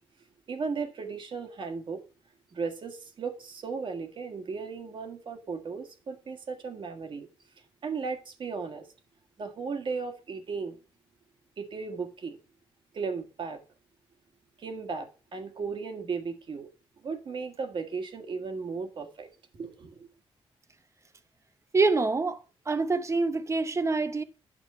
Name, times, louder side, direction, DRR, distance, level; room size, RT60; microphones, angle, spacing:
voice 1, 0.5-2.0 2.5-7.3 7.8-8.9 9.4-10.8 11.6-12.4 12.9-13.6 14.6-16.7 17.0-20.1, right 5 dB, 60° right, 1.6 m, -36 dB
voice 2, 21.7-22.4 22.7-24.2, right 3 dB, 30° right, 0.8 m, -25 dB
9.1 x 6.1 x 4.3 m
cardioid pair, 85°, 10 cm